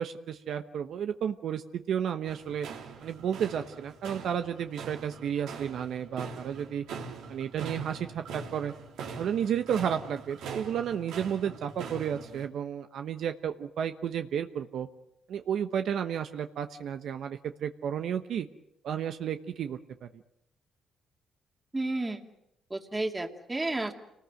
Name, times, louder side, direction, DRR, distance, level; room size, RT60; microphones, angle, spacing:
voice 1, 0.0-2.7 3.0-6.8 7.3-8.7 9.1-14.9 15.3-18.5 18.8-20.1, right 8 dB, 70° right, 8 dB, 1.0 m, -32 dB
sound 1, 2.3-12.5, right 5 dB, 90° right, 3.4 m, -43 dB
voice 2, 21.7-22.2 22.7-23.9, right 2 dB, 20° right, 4 dB, 2.4 m, -31 dB
28.0 x 19.5 x 7.8 m, 0.85 s
cardioid pair, 90°, 0 cm